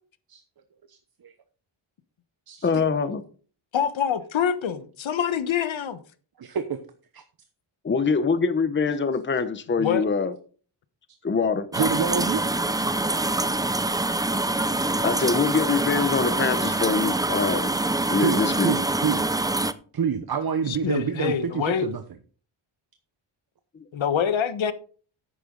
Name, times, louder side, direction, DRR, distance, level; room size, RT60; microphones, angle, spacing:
voice 1, 0.9-1.3 2.5-2.7 6.4-6.8 7.1-7.2 11.7-12.4 18.2-19.3 19.9-22.0, right 7 dB, 45° right, 1.0 m, -27 dB
voice 2, 2.6-3.2 7.8-10.3 11.2-11.7 15.0-17.7 18.1-18.7, left 5 dB, 25° left, 0.8 m, -24 dB
voice 3, 3.7-6.0 9.8-10.0 20.7-21.9 23.9-24.7, left 8 dB, 65° left, 1.3 m, -25 dB
sound 1, 11.7-19.7, right 2 dB, 10° right, 0.5 m, -25 dB
10.5 x 8.3 x 3.9 m
wide cardioid pair, 115°, 50 cm